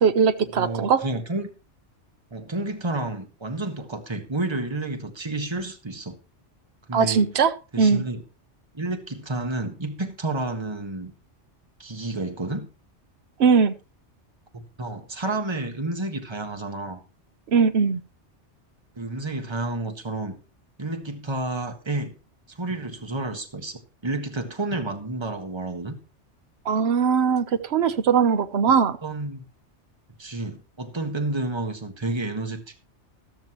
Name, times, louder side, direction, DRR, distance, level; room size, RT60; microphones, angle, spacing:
voice 1, 0.0-1.0 6.9-8.0 13.4-13.7 17.5-18.0 26.6-29.0, right 6 dB, 65° right, 12 dB, 1.1 m, -20 dB
voice 2, 0.5-1.5 2.3-6.2 6.9-7.3 7.7-8.2 8.7-11.1 11.8-12.7 14.5-17.0 18.9-20.3 20.8-22.1 22.5-26.0 29.0-29.4 30.2-32.8, right 2 dB, 25° right, 6 dB, 1.6 m, -30 dB
13.5 x 13.0 x 3.1 m, 0.31 s
omnidirectional pair, 1.2 m